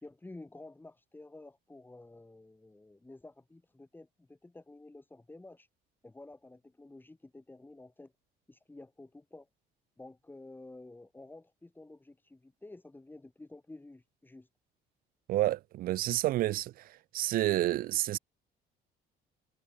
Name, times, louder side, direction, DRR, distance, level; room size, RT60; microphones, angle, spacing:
voice 1, 0.0-5.7 6.0-8.1 8.5-9.5 10.0-14.5, left 2 dB, 10° left, 3.6 m, -51 dB
voice 2, 15.3-16.9 17.1-18.2, right 15 dB, 60° right, 0.4 m, -29 dB
cardioid pair, 110°, 17 cm